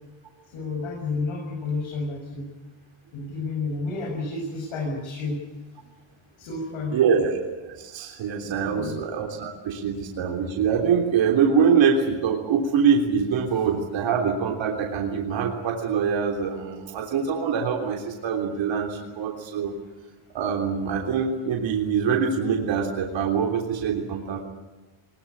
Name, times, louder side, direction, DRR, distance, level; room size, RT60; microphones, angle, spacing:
voice 1, 0.5-2.5 3.1-5.4 6.4-7.0 8.4-9.0, left 3 dB, 75° left, -1 dB, 7.6 m, -31 dB
voice 2, 6.9-19.7 20.3-24.4, right 6 dB, 65° right, 1 dB, 3.4 m, -24 dB
22.0 x 21.0 x 9.9 m, 1.2 s
cardioid pair, 165°, 49 cm